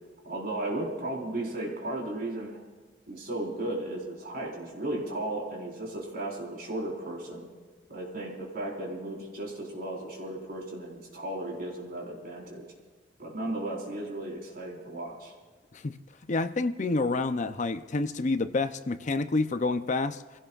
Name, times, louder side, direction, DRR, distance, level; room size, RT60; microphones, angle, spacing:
voice 1, 0.2-2.6 3.1-7.5 7.9-12.6 13.2-15.3, right 1 dB, 55° right, -2 dB, 4.4 m, -35 dB
voice 2, 16.3-20.2, left 3 dB, 40° left, 10 dB, 0.6 m, -28 dB
28.0 x 17.0 x 2.4 m, 1.4 s
head